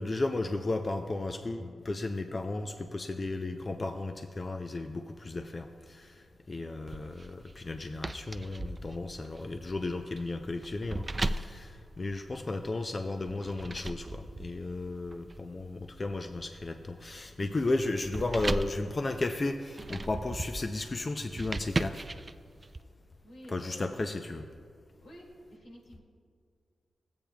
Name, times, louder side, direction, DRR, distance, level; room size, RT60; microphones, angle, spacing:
voice 1, 0.0-22.1 23.5-24.5, left 2 dB, 40° left, 6 dB, 0.4 m, -34 dB
sound 1, 6.9-12.7 13.3-22.8, right 2 dB, 35° right, 0.3 m, -38 dB
voice 2, 23.2-24.2 25.0-26.0, equal, 90° left, -2 dB, 2.2 m, -50 dB
15.0 x 8.6 x 2.3 m, 2.1 s
cardioid pair, 70°, 0 cm